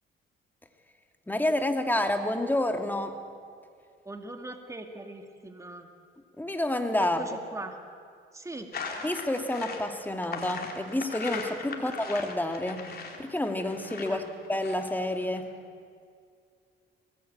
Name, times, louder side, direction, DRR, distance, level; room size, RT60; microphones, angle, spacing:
voice 1, 1.3-3.2 6.4-7.2 9.0-12.9 13.2-15.5, left 1 dB, 10° left, 6 dB, 2.3 m, -29 dB
voice 2, 4.1-5.9 7.0-7.7 8.3-8.7 11.7-11.9 14.1-14.3, right 2 dB, 15° right, 5 dB, 2.1 m, -41 dB
sound 1, 8.7-15.4, left 5 dB, 50° left, 3.7 m, -39 dB
23.0 x 18.5 x 8.8 m, 2.3 s
cardioid pair, 90°, 20 cm